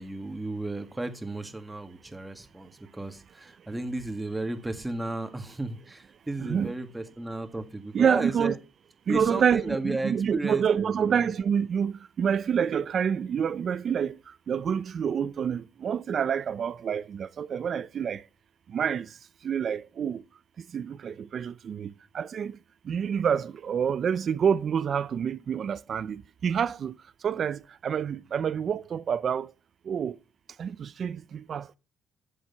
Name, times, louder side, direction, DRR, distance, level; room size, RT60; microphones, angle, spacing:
voice 1, 0.0-8.5 9.1-11.3, right 2 dB, 15° right, 2.1 m, -34 dB
voice 2, 6.4-6.7 7.9-8.5 9.1-18.3 18.7-20.2 20.6-22.6 22.8-29.5 29.8-30.2 30.6-31.8, right 7 dB, 55° right, 0.6 m, -28 dB
11.5 x 7.6 x 5.7 m
cardioid pair, 90°, 0 cm